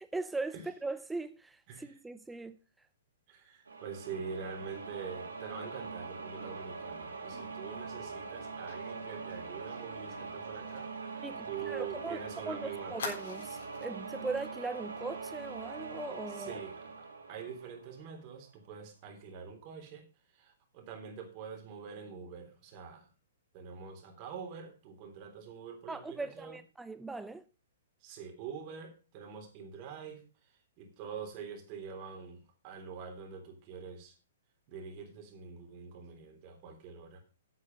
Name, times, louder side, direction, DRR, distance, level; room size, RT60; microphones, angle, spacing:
voice 1, 0.0-2.6 11.2-12.2 12.5-16.6 25.9-27.4, right 3 dB, 5° right, 0.5 m, -39 dB
voice 2, 3.3-13.1 16.3-20.0 20.3-23.0 23.5-26.6 28.0-30.2 30.8-34.1 34.7-37.2, right 6 dB, 40° right, 3.4 m, -45 dB
sound 1, 3.7-18.3, right 4 dB, 85° right, 2.6 m, -43 dB
Fire, 8.7-12.1 12.4-12.5 13.0-13.9 14.4-14.5 14.9-15.1, left 4 dB, 70° left, 4.0 m, -46 dB
8.5 x 8.2 x 5.4 m
hypercardioid pair, 125°, 0 cm